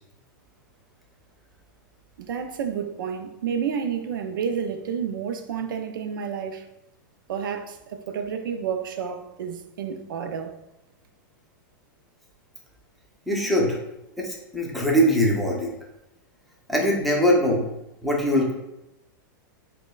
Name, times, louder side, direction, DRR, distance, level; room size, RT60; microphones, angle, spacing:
voice 1, 2.2-6.7 7.3-10.6, right 7 dB, 90° right, 0.4 m, -30 dB
voice 2, 13.3-13.8 14.2-15.7 16.7-17.7 18.0-18.5, equal, ahead, 0.6 m, -22 dB
5.1 x 2.1 x 2.3 m
supercardioid pair, 140°, 11 cm